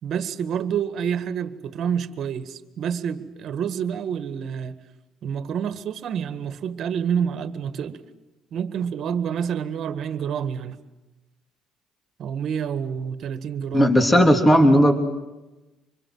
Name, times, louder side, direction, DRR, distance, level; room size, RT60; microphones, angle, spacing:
voice 1, 0.0-4.7 5.2-8.0 8.5-10.8 12.2-13.9, right 7 dB, 60° right, 11 dB, 1.8 m, -28 dB
voice 2, 13.7-14.9, equal, 15° left, 5 dB, 3.1 m, -15 dB
26.0 x 22.5 x 7.9 m, 1.0 s
cardioid pair, 95°, 0 cm